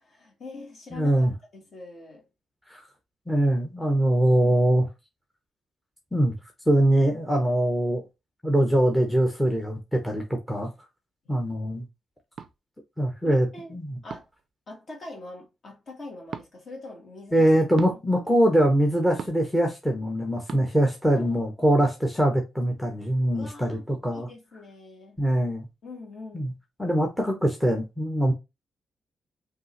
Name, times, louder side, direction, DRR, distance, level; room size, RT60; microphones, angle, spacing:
voice 1, 0.0-1.3 1.5-2.2 4.2-4.6 11.2-11.4 13.2-13.8 14.0-14.3 14.7-17.5 18.1-18.2 21.2-21.8 23.3-23.8 24.1-25.2 25.8-26.5, left 2 dB, 45° left, 1.9 m, -43 dB
voice 2, 0.9-1.3 2.7-2.8 3.3-4.9 6.1-6.3 6.7-8.0 8.4-10.7 11.3-11.8 13.0-14.0 17.3-24.3 25.2-25.6 26.3-26.5 26.8-28.3, right 1 dB, 5° left, 0.9 m, -23 dB
sound 1, 12.4-12.5 14.1-14.4 16.3-16.5 17.8-18.0 19.2-19.5 20.5-20.6, right 6 dB, 50° right, 0.4 m, -37 dB
5.3 x 2.8 x 3.1 m
wide cardioid pair, 150°, 0 cm